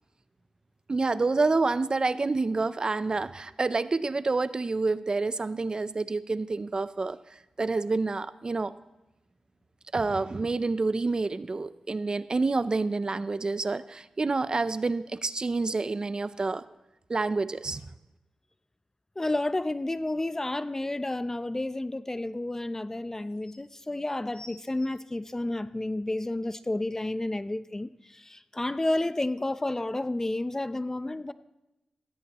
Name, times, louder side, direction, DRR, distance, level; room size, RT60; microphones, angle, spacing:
voice 1, 0.9-8.7 9.9-16.6 17.1-17.8, right 3 dB, 40° right, 14 dB, 0.6 m, -28 dB
voice 2, 19.2-31.3, left 2 dB, 25° left, 13 dB, 0.6 m, -31 dB
sound 1, 23.1-23.6 24.3-25.9 26.6-26.7, left 1 dB, 45° left, 2.8 m, -52 dB
16.5 x 16.0 x 3.0 m, 0.95 s
cardioid pair, 55°, 2 cm